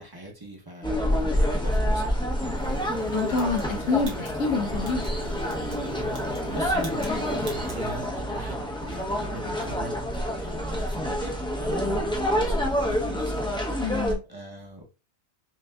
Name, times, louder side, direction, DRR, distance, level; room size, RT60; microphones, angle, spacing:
voice 1, 0.0-2.6 6.5-10.0 10.3-13.4 13.7-14.8, right 1 dB, 20° right, 0.8 m, -41 dB
sound 1, 0.8-14.1, equal, 5° left, 0.4 m, -27 dB
sound 2, 2.5-8.0, right 3 dB, 65° right, 1.3 m, -43 dB
voice 2, 3.1-5.0 13.8-14.2, left 4 dB, 70° left, 1.2 m, -27 dB
sound 3, 3.3-5.1 5.5-5.8 6.1-6.5 6.8-7.1 7.4-7.8, right 3 dB, 85° right, 1.5 m, -45 dB
5.9 x 2.6 x 2.3 m
omnidirectional pair, 1.4 m